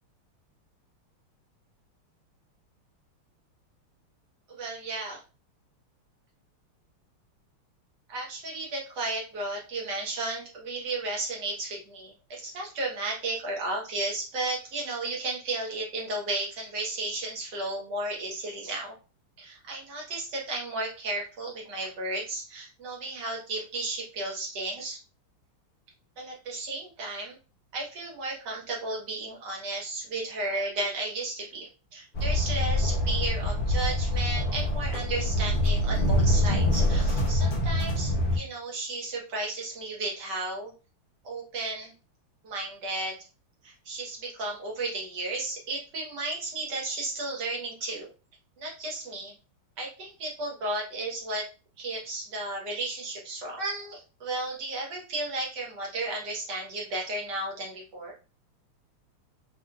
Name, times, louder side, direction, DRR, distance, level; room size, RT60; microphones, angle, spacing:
voice 1, 4.5-5.2 8.1-18.9 19.4-25.0 26.2-27.3 27.7-40.7 41.2-41.9 42.4-43.1 43.6-48.1 48.6-49.3 49.8-51.5 51.8-58.1, right 2 dB, 55° right, -1 dB, 1.7 m, -34 dB
sound 1, 32.1-38.4, left 1 dB, 70° left, 0.5 m, -25 dB
4.2 x 3.1 x 2.5 m, 0.32 s
omnidirectional pair, 2.4 m